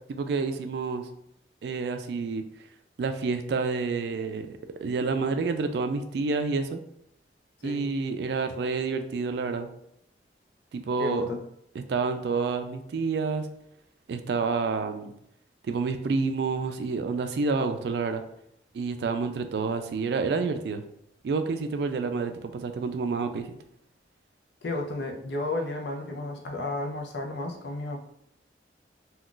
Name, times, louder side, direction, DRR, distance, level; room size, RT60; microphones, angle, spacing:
voice 1, 0.1-1.1 1.6-2.4 3.0-4.5 4.8-6.8 7.6-9.7 10.7-11.3 11.8-13.5 14.1-15.1 15.7-18.2 18.7-20.8 21.2-23.5, right 4 dB, 65° right, 8 dB, 0.3 m, -28 dB
voice 2, 11.0-11.4 24.6-28.0, left 2 dB, 70° left, 2 dB, 0.5 m, -32 dB
2.4 x 2.3 x 3.7 m, 0.75 s
head